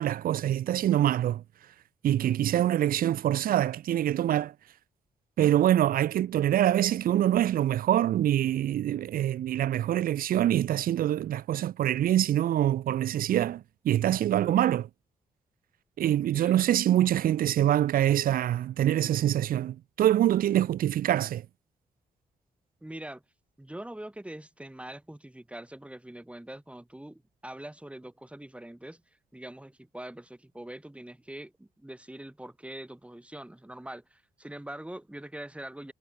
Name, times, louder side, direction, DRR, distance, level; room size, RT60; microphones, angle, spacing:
voice 1, 0.0-1.4 2.0-4.5 5.4-14.9 16.0-21.4, right 12 dB, 85° right, 1.0 m, -25 dB
voice 2, 22.8-23.2 23.6-29.0 29.3-35.9, right 1 dB, 10° right, 5.4 m, -43 dB
cardioid pair, 80°, 14 cm